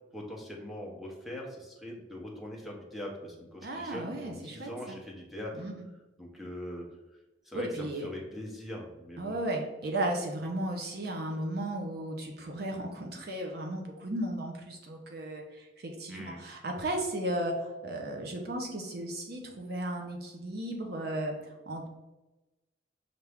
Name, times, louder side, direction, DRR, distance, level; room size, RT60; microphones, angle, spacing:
voice 1, 0.1-5.7 6.2-6.8 7.4-9.4 16.1-16.4, equal, ahead, -2 dB, 0.8 m, -42 dB
voice 2, 3.6-5.0 5.5-5.9 7.5-8.1 9.2-21.9, right 1 dB, 60° right, 2 dB, 0.7 m, -35 dB
5.8 x 2.6 x 3.4 m, 1.1 s
head